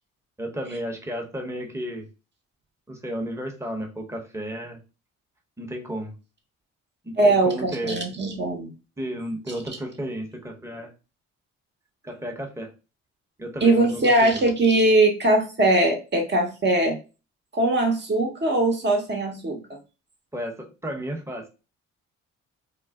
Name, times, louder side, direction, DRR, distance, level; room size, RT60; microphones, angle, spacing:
voice 1, 0.4-2.1 2.9-4.8 5.6-6.2 7.0-8.0 9.0-10.9 12.0-12.7 13.4-14.4 20.3-21.5, equal, 10° right, 2 dB, 0.9 m, -33 dB
voice 2, 7.2-8.7 13.6-17.0 17.5-19.6, right 2 dB, 35° right, 3 dB, 1.0 m, -21 dB
2.4 x 2.0 x 3.5 m, 0.31 s
supercardioid pair, 65°, 31 cm